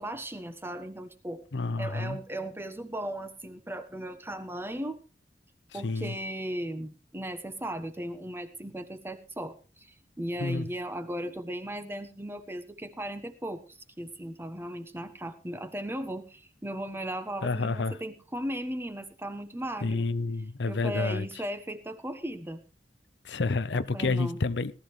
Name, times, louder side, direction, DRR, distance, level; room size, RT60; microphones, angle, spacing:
voice 1, 0.0-1.4 1.8-5.0 5.7-20.1 20.6-22.6 23.7-24.4, right 1 dB, 15° right, 1.2 m, -37 dB
voice 2, 1.5-2.2 5.7-6.1 10.4-10.7 17.4-18.0 19.8-21.3 23.2-24.7, left 3 dB, 85° left, 0.7 m, -29 dB
18.0 x 13.0 x 3.2 m
head